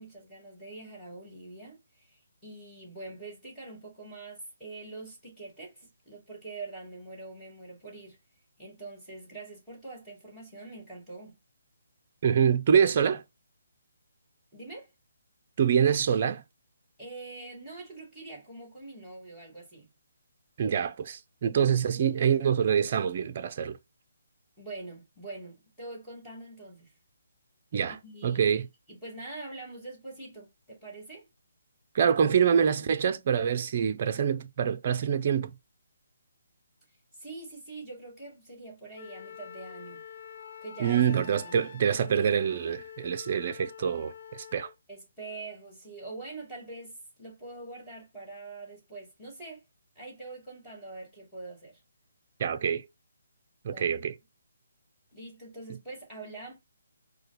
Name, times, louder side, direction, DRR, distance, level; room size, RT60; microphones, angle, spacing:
voice 1, 0.0-8.2 8.6-11.4 14.5-14.9 17.0-19.9 24.6-26.9 27.9-28.4 28.9-31.2 37.1-40.0 40.6-41.0 41.4-41.7 44.9-49.6 50.0-51.8 53.7-54.0 55.1-56.5, right 3 dB, 5° left, 2.4 m, -44 dB
voice 2, 12.2-13.2 15.6-16.4 20.6-23.8 27.7-28.0 28.2-28.7 31.9-35.5 40.8-44.7 52.4-52.9 53.6-54.1, right 7 dB, 40° right, 0.6 m, -25 dB
Wind instrument woodwind instrument, 38.9-44.8, left 8 dB, 45° left, 0.4 m, -46 dB
4.8 x 2.2 x 4.3 m
hypercardioid pair, 160°, 0 cm